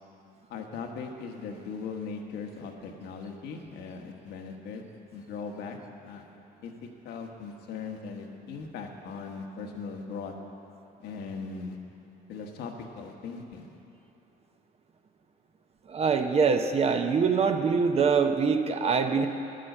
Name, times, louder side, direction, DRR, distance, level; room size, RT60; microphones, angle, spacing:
voice 1, 0.5-4.8 5.1-5.8 6.0-6.2 6.6-6.7 7.0-10.3 11.0-11.8 12.3-13.7, left 5 dB, 75° left, 2 dB, 1.3 m, -39 dB
voice 2, 15.9-19.3, right 5 dB, 35° right, 6 dB, 0.8 m, -24 dB
10.5 x 7.7 x 7.8 m, 2.8 s
cardioid pair, 110°, 17 cm